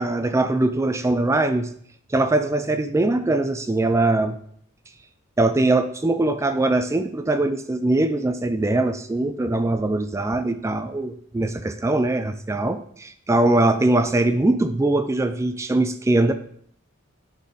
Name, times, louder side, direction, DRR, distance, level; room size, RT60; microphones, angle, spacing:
voice 1, 0.0-1.7 2.1-4.4 5.4-16.3, right 2 dB, 15° right, 10 dB, 0.3 m, -21 dB
11.5 x 4.3 x 3.8 m, 0.63 s
head